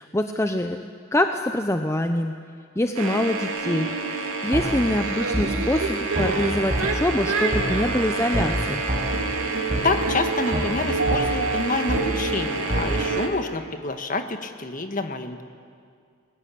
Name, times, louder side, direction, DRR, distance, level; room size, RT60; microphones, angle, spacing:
voice 1, 0.0-2.3 2.8-3.9 4.4-8.8, left 1 dB, 15° left, 6 dB, 0.7 m, -24 dB
sound 1, 3.0-13.3, right 3 dB, 75° right, 2.8 m, -27 dB
sound 2, 4.5-4.7 5.3-5.5 6.1-6.3 6.7-6.8 7.5-7.7 8.3-8.5 8.9-9.0 9.7-9.8 10.5-10.7 11.1-11.2 11.9-12.0 12.7-12.8, right 1 dB, 35° right, 6.8 m, -25 dB
voice 2, 9.8-15.4, left 2 dB, 40° left, 7 dB, 1.6 m, -28 dB
29.0 x 20.5 x 8.5 m, 2.2 s
head